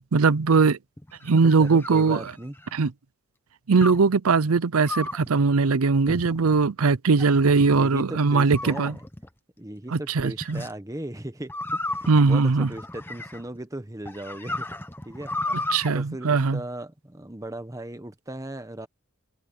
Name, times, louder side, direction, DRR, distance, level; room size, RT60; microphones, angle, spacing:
voice 1, 0.1-0.8 1.2-2.3 2.7-2.9 3.7-9.0 9.9-10.6 12.1-12.7 15.5-16.6, right 4 dB, 90° right, 0.6 m, -20 dB
sound 1, 1.0-2.8 3.8-4.1 4.8-5.3 6.1-6.6 7.2-7.8 8.5-9.3 10.4-10.7 11.5-13.6 14.0-15.9, left 2 dB, 10° left, 1.2 m, -34 dB
voice 2, 1.3-2.5 7.2-8.9 9.6-14.7 15.0-15.3 15.6-18.9, right 1 dB, 15° right, 1.1 m, -37 dB
head